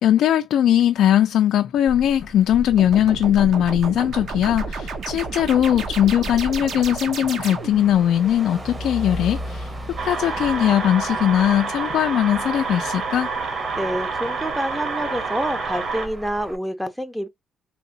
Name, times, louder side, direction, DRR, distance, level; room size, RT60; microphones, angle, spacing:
voice 1, 0.0-9.7 10.0-13.3, left 11 dB, 75° left, 0.3 m, -19 dB
Motor vehicle (road), 1.9-16.6, equal, 25° right, 0.8 m, -36 dB
sound 1, 2.8-8.0, right 5 dB, 65° right, 0.9 m, -32 dB
sound 2, 10.0-16.1, right 4 dB, 50° right, 1.3 m, -28 dB
voice 2, 13.8-17.3, equal, ahead, 0.5 m, -27 dB
3.4 x 2.8 x 2.7 m
cardioid pair, 90°, 0 cm